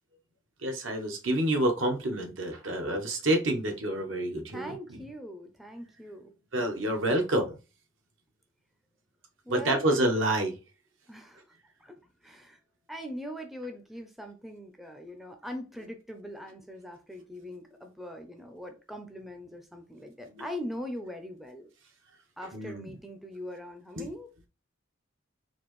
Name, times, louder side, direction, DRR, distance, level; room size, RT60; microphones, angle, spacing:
voice 1, 0.6-4.7 6.5-7.6 9.5-10.6 20.3-20.5 22.5-22.9 24.0-24.1, right 1 dB, 70° right, 0.9 m, -28 dB
voice 2, 4.5-6.3 9.4-9.9 11.1-11.4 11.8-12.6 12.9-21.7 22.4-24.5, equal, ahead, 0.4 m, -41 dB
4.2 x 2.5 x 3.0 m
head